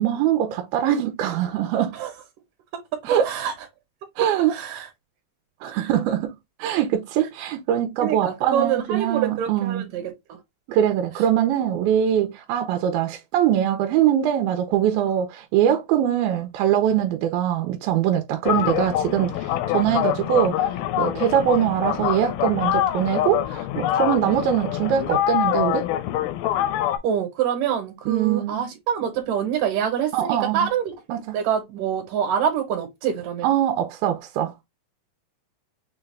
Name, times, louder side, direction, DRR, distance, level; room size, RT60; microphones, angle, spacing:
voice 1, 0.0-2.0 3.1-3.3 4.2-4.5 5.6-9.9 10.7-25.8 28.1-28.7 30.1-30.7 31.1-31.4 33.4-34.6, right 10 dB, 90° right, 2.4 m, -22 dB
voice 2, 2.7-3.5 4.5-4.9 5.7-5.9 8.0-10.0 27.0-30.9 31.3-33.5, right 8 dB, 75° right, 2.4 m, -26 dB
sound 1, 18.4-27.0, left 12 dB, 85° left, 2.5 m, -25 dB
6.4 x 2.3 x 3.2 m
omnidirectional pair, 4.2 m